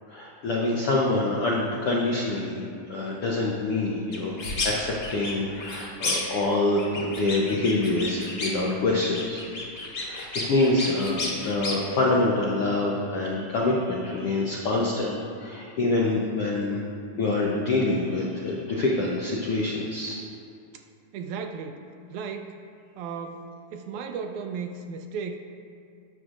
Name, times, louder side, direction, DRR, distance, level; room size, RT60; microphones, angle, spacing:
voice 1, 0.1-2.6 2.9-4.3 4.6-9.4 10.0-16.8 17.2-20.2, left 2 dB, 90° left, -3 dB, 1.2 m, -26 dB
sound 1, 4.1-4.7 5.0-6.5 6.8-8.7 9.0-11.8, left 2 dB, 45° left, 1.8 m, -32 dB
voice 2, 21.1-21.8 22.1-22.5 23.0-25.4, right 5 dB, 80° right, 5 dB, 1.8 m, -35 dB
18.5 x 6.3 x 2.5 m, 2.4 s
omnidirectional pair, 3.7 m